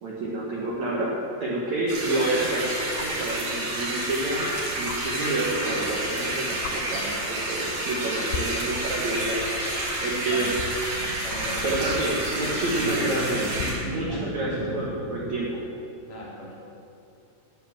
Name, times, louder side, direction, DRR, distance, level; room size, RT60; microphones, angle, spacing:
voice 1, 0.0-6.6 6.9-7.2 7.5-9.4 10.0-10.5 11.1-11.3 11.6-13.5 13.8-15.6, right 2 dB, 70° right, -5 dB, 1.7 m, -28 dB
sound 1, 0.7-0.8 2.9-3.3 4.9-5.0 6.1-6.2 6.6-6.8 7.7-8.0 8.3-14.0 15.6-15.7, left 8 dB, 85° left, 2.8 m, -39 dB
sound 2, 1.9-13.7, right 1 dB, 50° right, 4.0 m, -30 dB
voice 2, 9.5-10.5 11.2-13.0 14.0-14.4 16.1-16.5, left 1 dB, 40° left, -6 dB, 3.8 m, -39 dB
sound 3, 10.5-15.7, equal, 60° left, 4.1 m, -37 dB
10.0 x 9.7 x 7.4 m, 2.7 s
omnidirectional pair, 5.3 m